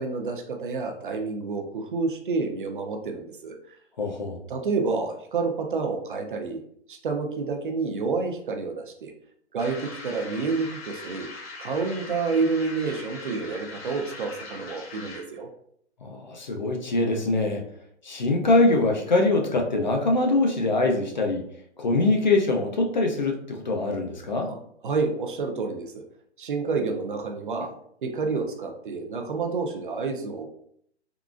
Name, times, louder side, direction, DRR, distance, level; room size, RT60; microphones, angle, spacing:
voice 1, 0.0-3.8 4.5-6.6 6.9-9.1 9.5-11.3 11.6-15.5 24.4-24.6 24.8-26.0 26.4-27.7 28.0-30.5, right 4 dB, 50° right, 4 dB, 0.5 m, -29 dB
voice 2, 4.0-4.4 16.0-17.6 18.0-21.4 21.8-24.5, left 2 dB, 40° left, 2 dB, 0.4 m, -23 dB
sound 1, 9.6-15.4, left 3 dB, 60° left, 0.9 m, -41 dB
3.6 x 2.3 x 2.4 m, 0.68 s
hypercardioid pair, 170°, 35 cm